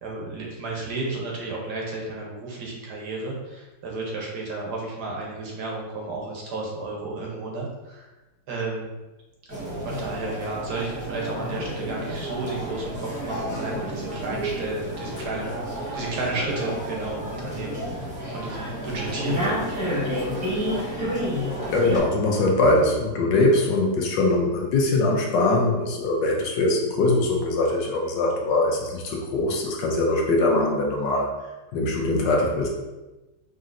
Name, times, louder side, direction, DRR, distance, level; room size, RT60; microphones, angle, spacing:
voice 1, 0.0-8.1 8.5-8.9 9.8-15.6 15.9-20.0, right 3 dB, 65° right, -2 dB, 1.3 m, -32 dB
sound 1, 9.5-22.0, equal, 5° right, 1.0 m, -30 dB
voice 2, 21.7-31.3 31.7-32.7, left 2 dB, 75° left, 0 dB, 1.3 m, -22 dB
5.1 x 2.9 x 2.5 m, 1.1 s
omnidirectional pair, 2.0 m